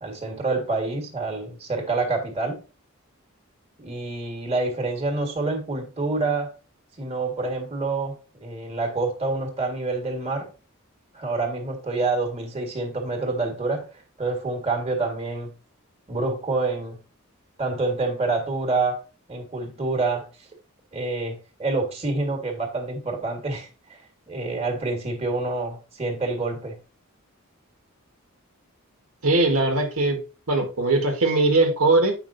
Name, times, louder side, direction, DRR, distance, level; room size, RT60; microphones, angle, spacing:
voice 1, 0.0-2.6 3.8-6.5 7.0-10.5 11.1-13.9 14.2-15.5 16.1-17.0 17.6-19.0 19.3-20.3 20.9-23.7 24.3-26.8, right 3 dB, 30° right, 1.8 m, -27 dB
voice 2, 29.2-30.2 30.5-32.1, right 2 dB, 85° right, 1.8 m, -20 dB
8.3 x 5.5 x 2.7 m
head